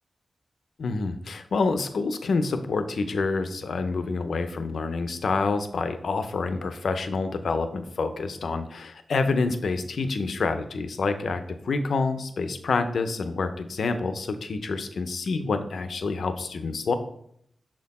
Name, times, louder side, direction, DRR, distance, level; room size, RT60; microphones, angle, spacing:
voice 1, 0.8-16.9, left 4 dB, 85° left, 9 dB, 0.6 m, -27 dB
6.1 x 4.3 x 4.1 m, 0.70 s
wide cardioid pair, 90°, 0 cm